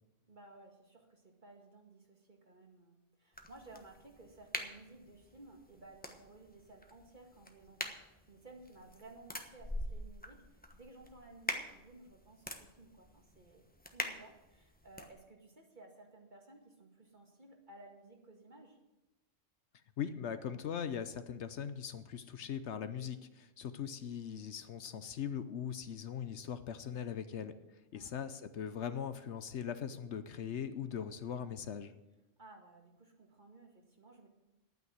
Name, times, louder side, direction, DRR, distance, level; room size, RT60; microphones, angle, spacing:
voice 1, 0.2-13.6 13.9-18.8 27.9-28.4 32.4-34.3, right 2 dB, 40° right, 2 dB, 2.1 m, -57 dB
sound 1, 3.3-15.1, left 1 dB, 10° left, 1.1 m, -45 dB
voice 2, 20.0-27.6 27.9-31.9, left 8 dB, 65° left, 12 dB, 1.0 m, -40 dB
11.0 x 9.3 x 7.9 m, 1.0 s
omnidirectional pair, 1.3 m